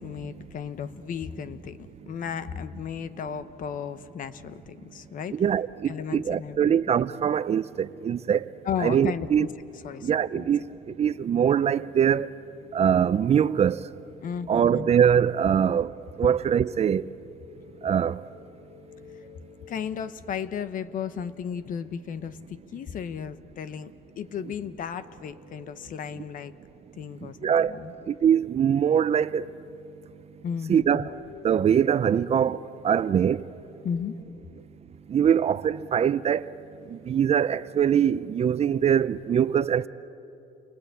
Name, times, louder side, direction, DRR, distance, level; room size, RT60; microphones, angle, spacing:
voice 1, 0.0-5.4 5.8-6.7 8.6-9.5 9.8-10.5 14.2-14.9 19.7-26.5 27.0-27.9 30.4-31.1 33.8-34.1, left 7 dB, 55° left, 1.0 m, -34 dB
voice 2, 5.3-8.4 8.8-9.5 10.0-12.3 12.7-13.8 14.5-15.9 16.2-17.1 17.8-18.2 27.2-27.8 28.1-29.5 30.7-31.1 31.4-32.6 32.8-33.4 35.1-36.5 36.9-39.9, right 8 dB, 40° right, 0.6 m, -23 dB
sound 1, 17.5-20.7 24.2-26.8 30.9-34.7, left 7 dB, 80° left, 2.4 m, -52 dB
29.0 x 22.5 x 8.4 m
cardioid pair, 110°, 17 cm